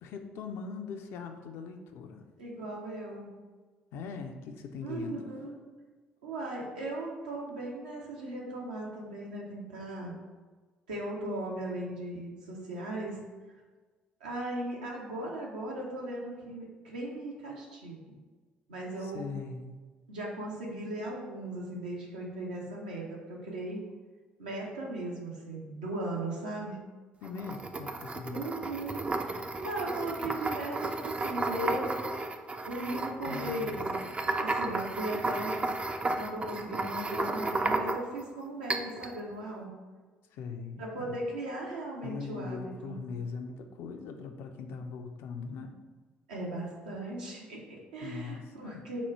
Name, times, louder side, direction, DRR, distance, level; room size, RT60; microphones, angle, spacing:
voice 1, 0.0-2.3 3.9-5.2 19.0-19.8 27.2-28.5 33.2-34.0 40.3-41.2 42.0-45.7 48.0-48.8, left 5 dB, 55° left, 5 dB, 0.4 m, -41 dB
voice 2, 2.4-3.4 4.8-5.6 6.2-10.1 10.9-13.2 14.2-18.2 18.7-19.3 20.1-23.8 24.4-26.8 28.3-32.0 32.7-34.1 34.4-35.6 36.2-39.8 40.8-43.0 46.3-49.0, right 1 dB, 75° right, -3 dB, 0.8 m, -38 dB
sound 1, 27.2-38.2 38.7-39.1, right 2 dB, 25° right, 0.4 m, -33 dB
4.2 x 2.3 x 4.6 m, 1.4 s
figure-of-eight pair, 50°, 5 cm